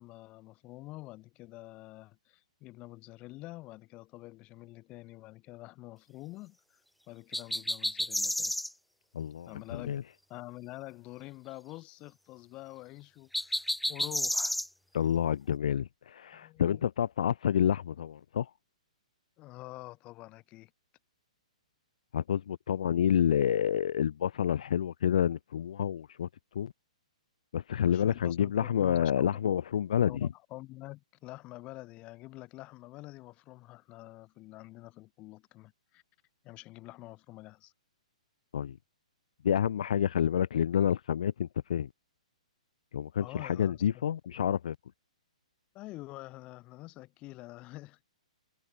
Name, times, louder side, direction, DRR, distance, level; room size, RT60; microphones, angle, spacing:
voice 1, 0.0-6.8 7.1-8.5 9.4-10.0 10.3-14.6 16.3-16.8 19.4-20.7 27.9-29.4 30.0-36.0 36.4-37.7 43.2-44.0 45.7-48.1, left 19 dB, 30° left, 4.8 m, -47 dB
sound 1, 7.3-8.7 13.3-14.7, left 1 dB, ahead, 0.7 m, -31 dB
voice 2, 9.1-10.0 14.9-18.5 22.1-26.3 26.5-26.7 27.5-30.3 38.5-38.8 39.4-41.9 42.9-44.8, left 9 dB, 65° left, 1.0 m, -28 dB
hypercardioid pair, 135°, 4 cm